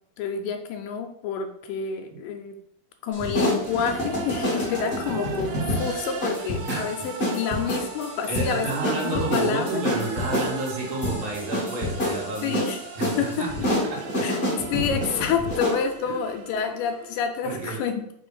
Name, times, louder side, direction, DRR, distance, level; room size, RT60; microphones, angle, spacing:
voice 1, 0.2-2.6 3.0-9.8 12.4-12.8 13.2-13.5 14.2-14.4 14.7-18.0, left 7 dB, 80° left, 5 dB, 2.0 m, -28 dB
sound 1, 3.1-15.8, left 1 dB, 35° left, 1.0 m, -28 dB
sound 2, 3.6-17.5, right 6 dB, 80° right, 2.4 m, -39 dB
voice 2, 6.7-7.1 8.3-12.6 13.0-13.5 13.8-14.3 16.1-16.2 17.4-17.8, right 3 dB, 60° right, -2 dB, 2.6 m, -30 dB
5.8 x 3.4 x 5.4 m, 0.72 s
omnidirectional pair, 4.3 m